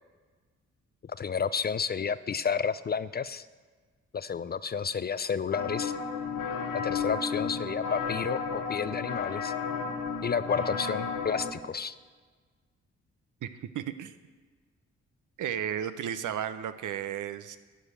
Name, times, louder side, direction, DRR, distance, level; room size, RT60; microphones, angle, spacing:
voice 1, 1.0-3.5 4.1-5.9 6.7-9.5 10.2-11.9, left 6 dB, 30° left, 15 dB, 0.4 m, -31 dB
sound 1, 5.5-11.5, left 5 dB, 70° left, 1.2 m, -33 dB
voice 2, 13.4-14.1 15.4-17.6, right 9 dB, 65° right, 12 dB, 0.6 m, -34 dB
11.0 x 5.0 x 7.2 m, 1.5 s
hypercardioid pair, 40°, 33 cm